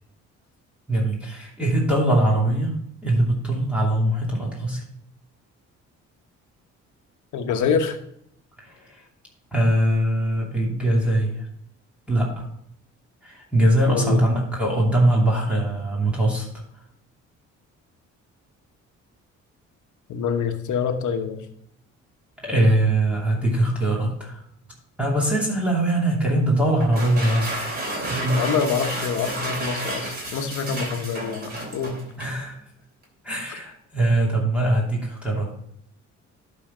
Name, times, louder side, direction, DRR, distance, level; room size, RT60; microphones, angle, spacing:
voice 1, 0.9-2.7 3.0-4.8 8.6-9.0 9.5-11.5 12.1-12.5 13.2-16.5 22.4-24.4 25.0-27.5 28.1-28.4 32.2-32.6 33.2-35.5, right 1 dB, 5° right, -3 dB, 2.7 m, -22 dB
voice 2, 7.3-8.0 13.9-14.2 20.1-21.4 28.3-32.0, left 6 dB, 75° left, 7 dB, 1.1 m, -26 dB
sound 1, 26.8-32.4, right 1 dB, 30° right, 3.1 m, -31 dB
11.5 x 4.3 x 5.0 m, 0.72 s
cardioid pair, 90°, 30 cm